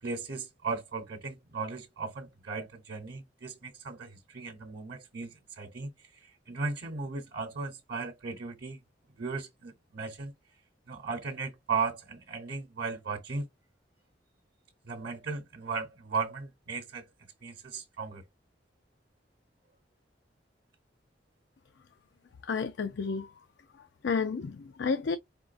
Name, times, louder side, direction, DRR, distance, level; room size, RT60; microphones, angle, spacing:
voice 1, 0.0-8.8 9.2-10.3 10.9-13.5 14.8-17.1 17.4-18.2, right 4 dB, 60° right, 0.8 m, -36 dB
voice 2, 22.4-23.3 24.0-25.2, left 5 dB, 85° left, 0.5 m, -31 dB
4.6 x 3.6 x 2.5 m
head